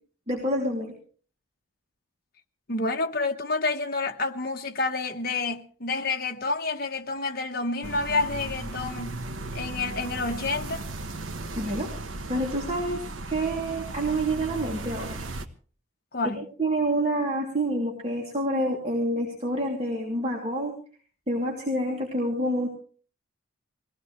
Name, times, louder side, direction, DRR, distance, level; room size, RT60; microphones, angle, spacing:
voice 1, 0.3-0.9 11.6-11.9 12.3-15.2 16.2-16.3 16.6-20.7 21.3-22.7, right 1 dB, 35° right, 2.9 m, -27 dB
voice 2, 2.7-9.2 9.5-10.9 16.1-16.4, left 3 dB, 50° left, 1.1 m, -29 dB
sound 1, 7.8-15.5, right 2 dB, 85° right, 1.2 m, -36 dB
22.0 x 16.5 x 3.2 m
head